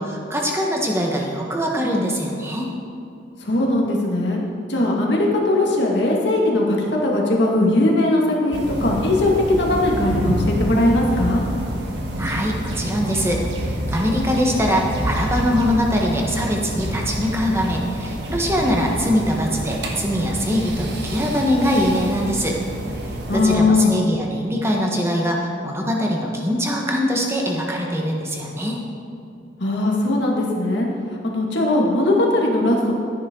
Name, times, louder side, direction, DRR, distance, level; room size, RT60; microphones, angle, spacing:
voice 1, 0.0-2.7 12.2-22.6 23.3-28.8, equal, 15° right, -1 dB, 1.4 m, -22 dB
voice 2, 3.4-4.4 4.7-11.4 23.3-23.9 29.6-30.9 31.2-32.9, left 2 dB, 70° left, -2 dB, 2.1 m, -19 dB
sound 1, 8.5-23.6, equal, 65° right, 1.5 m, -27 dB
13.0 x 10.0 x 3.9 m, 2.6 s
head